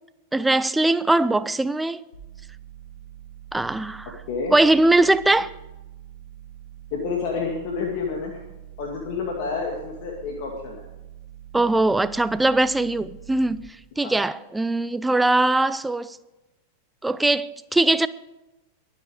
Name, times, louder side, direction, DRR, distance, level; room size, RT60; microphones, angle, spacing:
voice 1, 0.3-2.0 3.5-4.2 4.5-5.5 11.5-13.6 14.0-16.2 17.0-18.1, right 2 dB, 5° right, 0.5 m, -21 dB
sound 1, 2.1-13.6, right 12 dB, 75° left, 4.1 m, -44 dB
voice 2, 6.9-8.4 8.8-10.9 14.0-14.2, left 4 dB, 50° left, 2.0 m, -29 dB
22.5 x 8.3 x 5.0 m
figure-of-eight pair, 90°, 0 cm